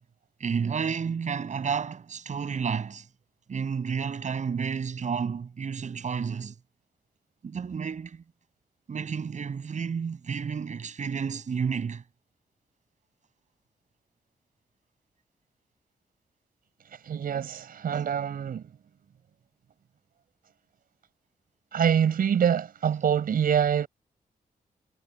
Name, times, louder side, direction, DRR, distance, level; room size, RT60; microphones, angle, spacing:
voice 1, 0.4-3.1 3.5-6.5 7.4-8.2 8.9-12.0, right 6 dB, 55° right, 6.4 m, -31 dB
voice 2, 16.9-18.7 21.7-23.9, right 8 dB, 75° right, 5.1 m, -25 dB
wide cardioid pair, 110°, 15 cm